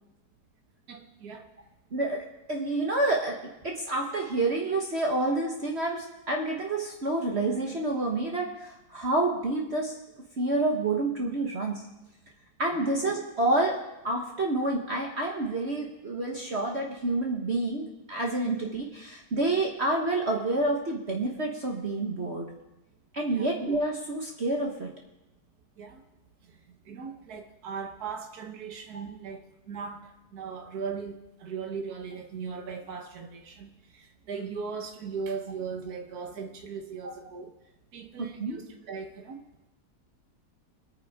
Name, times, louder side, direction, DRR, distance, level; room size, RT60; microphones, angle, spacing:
voice 1, 0.9-1.5 12.7-12.9 23.3-23.5 25.8-26.0 26.5-26.6 26.9-37.5 37.9-39.4, right 5 dB, 65° right, 4 dB, 1.7 m, -38 dB
voice 2, 1.9-2.2 2.5-9.9 10.4-11.8 12.6-13.8 14.0-22.5 23.1-24.9 28.9-29.0 38.2-38.6, right 2 dB, 40° right, 0 dB, 1.5 m, -28 dB
23.5 x 9.2 x 3.7 m, 0.94 s
omnidirectional pair, 1.8 m